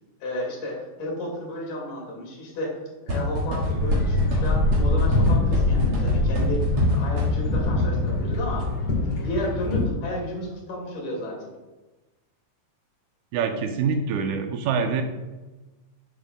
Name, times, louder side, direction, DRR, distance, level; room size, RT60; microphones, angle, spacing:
voice 1, 0.2-11.5, left 1 dB, 80° left, -2 dB, 3.7 m, -33 dB
sound 1, 3.1-7.7, equal, 50° right, 2.3 m, -27 dB
sound 2, 3.7-9.8, left 2 dB, 50° left, 2.1 m, -23 dB
voice 2, 13.3-15.0, right 6 dB, 80° right, 6 dB, 2.0 m, -25 dB
10.5 x 6.7 x 2.2 m, 1.1 s
omnidirectional pair, 3.6 m